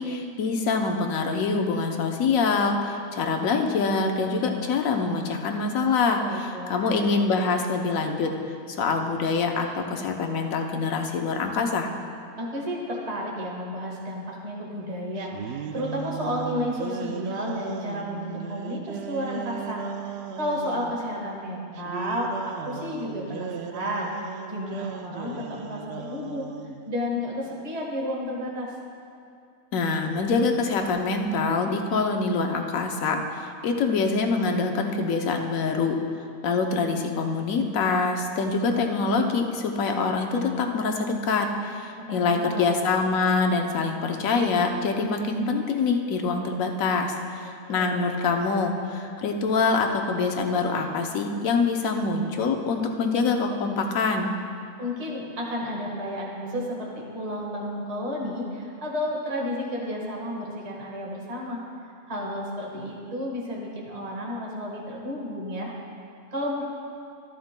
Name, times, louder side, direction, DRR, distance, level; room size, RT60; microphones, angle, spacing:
voice 1, 0.0-8.3 8.7-11.9 29.7-36.0 36.4-54.3, left 4 dB, 65° left, 3 dB, 1.2 m, -25 dB
voice 2, 6.2-7.1 12.4-19.8 20.4-24.1 24.5-26.5 26.9-28.7 42.0-42.9 47.4-47.5 47.8-48.1 54.8-61.6 62.1-65.7 66.3-66.6, left 1 dB, 25° right, -2 dB, 1.4 m, -32 dB
sound 1, 15.2-21.0 21.8-26.8, right 7 dB, 70° right, 0.6 m, -36 dB
14.0 x 11.0 x 2.2 m, 2.5 s
omnidirectional pair, 1.6 m